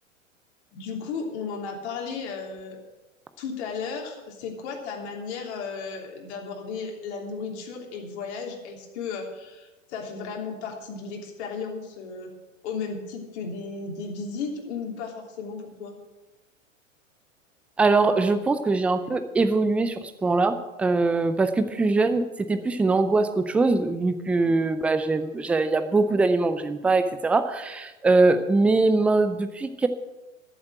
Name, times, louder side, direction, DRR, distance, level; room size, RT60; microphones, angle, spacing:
voice 1, 0.7-2.8 3.4-12.3 12.6-15.9, left 5 dB, 55° left, 1 dB, 3.2 m, -34 dB
voice 2, 17.8-29.9, right 3 dB, 5° right, 10 dB, 0.3 m, -22 dB
13.0 x 7.6 x 7.7 m, 1.1 s
hypercardioid pair, 105°, 39 cm